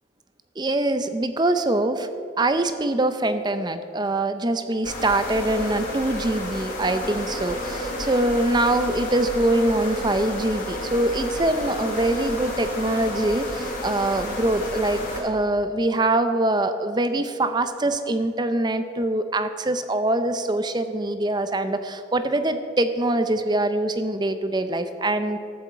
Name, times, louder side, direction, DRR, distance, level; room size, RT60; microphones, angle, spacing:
voice 1, 0.6-2.1 2.4-25.4, right 1 dB, 20° right, 10 dB, 0.6 m, -24 dB
sound 1, 4.8-15.2, left 1 dB, 40° left, 3.5 m, -31 dB
13.5 x 7.8 x 8.1 m, 2.3 s
head